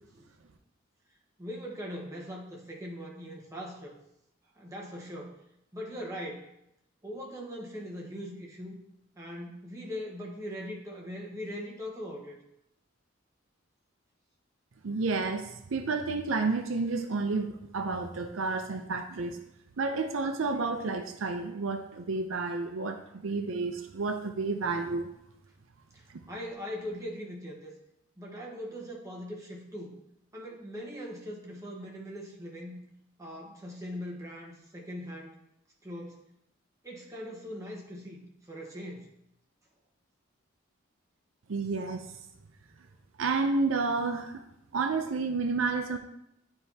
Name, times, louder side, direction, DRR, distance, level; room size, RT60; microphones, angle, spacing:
voice 1, 1.4-4.0 4.6-5.4 5.7-6.5 7.0-8.8 9.2-12.4 25.9-27.7 28.2-29.9 30.3-32.8 33.2-35.3 35.8-36.2 36.8-39.1, equal, 15° right, -2 dB, 1.2 m, -40 dB
voice 2, 14.8-19.4 19.8-25.1 41.5-42.1 43.2-44.4 44.7-46.0, right 3 dB, 75° right, 7 dB, 0.5 m, -30 dB
10.0 x 4.4 x 2.8 m, 0.80 s
head